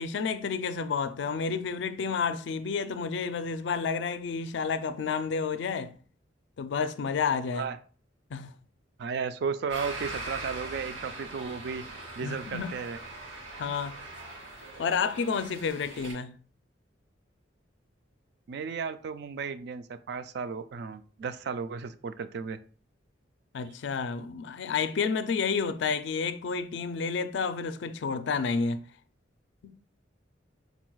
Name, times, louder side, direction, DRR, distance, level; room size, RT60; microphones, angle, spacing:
voice 1, 0.0-5.9 6.6-7.7 8.3-8.5 12.2-12.7 13.5-14.0 14.8-16.4 23.5-28.8 29.6-29.7, left 5 dB, 65° left, 0.4 m, -30 dB
voice 2, 9.0-11.8 12.2-13.0 18.5-22.6, right 5 dB, 60° right, 0.3 m, -34 dB
sound 1, 9.7-16.1, right 2 dB, 85° right, 2.1 m, -41 dB
4.0 x 2.3 x 4.6 m
head